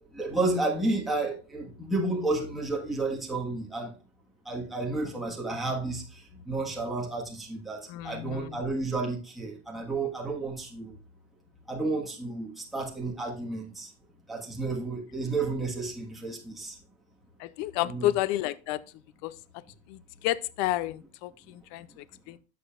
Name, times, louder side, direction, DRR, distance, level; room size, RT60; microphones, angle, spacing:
voice 1, 0.1-3.9 4.5-6.0 6.5-10.9 11.7-13.9 14.3-16.7 17.9-18.1, right 2 dB, ahead, 1.4 m, -31 dB
voice 2, 7.9-8.6 17.4-18.8 19.2-19.4 19.9-22.4, left 15 dB, 40° left, 0.5 m, -31 dB
11.0 x 7.0 x 2.4 m
supercardioid pair, 145°, 35 cm